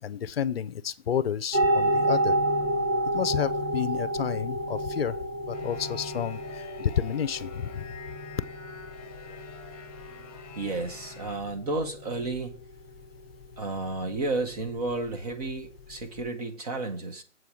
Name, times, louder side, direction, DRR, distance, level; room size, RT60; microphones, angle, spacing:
voice 1, 0.0-2.4 3.1-5.2 5.5-7.8, left 9 dB, 50° left, 0.6 m, -30 dB
sound 1, 1.5-16.3, right 1 dB, 15° right, 1.3 m, -31 dB
sound 2, 5.5-11.4, left 7 dB, 30° left, 1.4 m, -49 dB
voice 2, 10.6-12.6 13.6-17.2, right 2 dB, 30° right, 0.9 m, -32 dB
7.8 x 4.7 x 7.0 m
hypercardioid pair, 155°, 38 cm